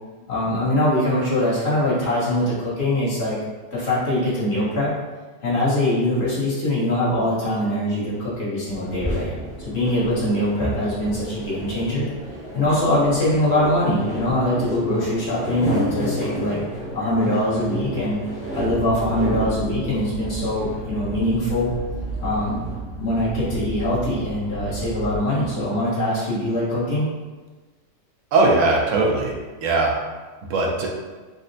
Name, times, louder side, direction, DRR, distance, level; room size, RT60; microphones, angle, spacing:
voice 1, 0.3-3.4 3.7-4.9 5.4-9.3 9.6-12.1 12.5-16.6 16.9-18.2 18.5-21.7 22.2-22.6 23.0-27.1, left 1 dB, 55° left, -9 dB, 1.3 m, -22 dB
sound 1, 8.6-22.8, equal, 5° right, 0.8 m, -32 dB
sound 2, 18.6-25.2, right 1 dB, 70° left, 1.1 m, -33 dB
voice 2, 28.3-29.3 29.6-30.0 30.5-30.9, right 3 dB, 75° right, 0 dB, 0.9 m, -19 dB
3.9 x 2.1 x 2.6 m, 1.3 s
omnidirectional pair, 1.4 m